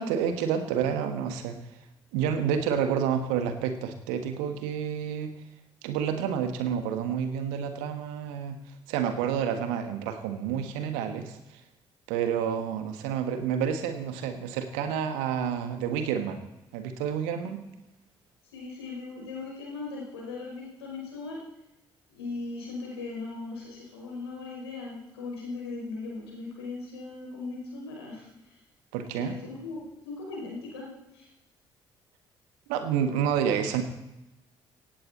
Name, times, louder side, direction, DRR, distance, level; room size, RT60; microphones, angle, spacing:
voice 1, 0.0-1.6 2.1-5.3 5.8-8.6 8.9-11.4 12.1-16.5 16.7-17.6 28.9-29.4 32.7-33.8, right 8 dB, 70° right, 8 dB, 1.6 m, -29 dB
voice 2, 18.5-21.4 22.1-28.6 29.1-30.9 31.1-31.3, left 3 dB, 80° left, -3 dB, 5.2 m, -38 dB
17.5 x 15.5 x 4.3 m, 0.94 s
figure-of-eight pair, 45°, 13 cm